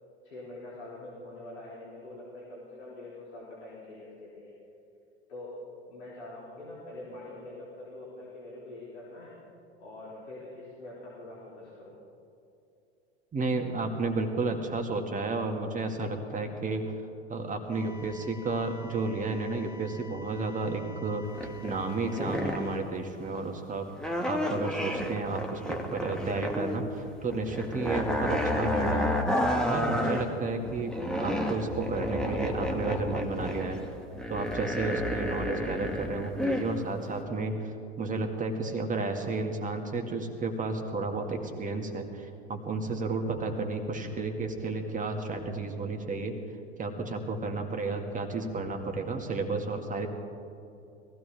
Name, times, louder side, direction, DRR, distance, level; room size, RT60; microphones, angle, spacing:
voice 1, 0.2-4.5 5.3-5.6 5.9-9.4 9.8-12.0 25.9-26.4 44.1-44.6, left 2 dB, 80° left, -6 dB, 3.6 m, -45 dB
voice 2, 13.3-16.9 17.3-21.3 21.6-23.9 24.3-29.2 29.7-33.8 34.3-46.4 46.8-50.1, right 3 dB, 25° right, 4 dB, 2.2 m, -32 dB
Electrocardiogram dead tone, 17.7-22.8, left 3 dB, 60° left, 3.1 m, -50 dB
sound 1, 21.2-21.8 22.1-22.7 24.0-26.8 27.0-30.2 30.6-36.7 37.1-37.2, left 1 dB, ahead, 1.9 m, -31 dB
22.0 x 15.5 x 3.5 m, 2.7 s
hypercardioid pair, 85°, 34 cm